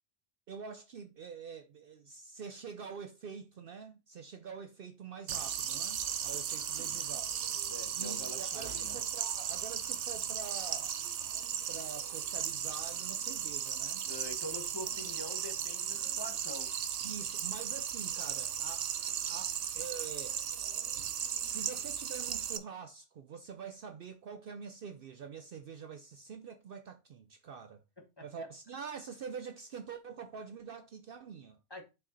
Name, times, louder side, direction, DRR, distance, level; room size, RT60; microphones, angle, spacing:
voice 1, 0.5-7.3 7.9-10.9 11.7-14.1 15.0-15.2 17.0-18.9 19.3-20.4 21.2-27.8 28.2-31.6, right 6 dB, 60° right, 0.7 m, -46 dB
sound 1, 5.3-22.6, right 9 dB, 80° right, 1.0 m, -36 dB
voice 2, 7.7-9.0 14.0-16.7 28.0-28.3 31.7-31.8, left 1 dB, 20° left, 1.2 m, -45 dB
5.8 x 5.0 x 4.0 m
omnidirectional pair, 1.2 m